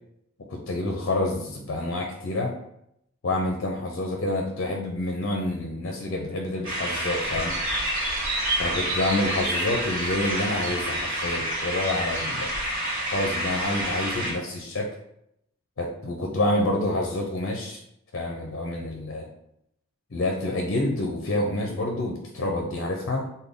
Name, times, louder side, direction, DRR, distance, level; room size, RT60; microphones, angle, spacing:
voice 1, 0.5-2.5 3.2-7.6 8.6-12.5 13.1-14.9 15.8-17.8 18.1-19.3 20.1-23.3, left 1 dB, 55° left, 1 dB, 0.5 m, -28 dB
sound 1, 6.6-14.3, right 1 dB, 70° right, 1.3 m, -28 dB
3.4 x 2.2 x 3.6 m, 0.77 s
head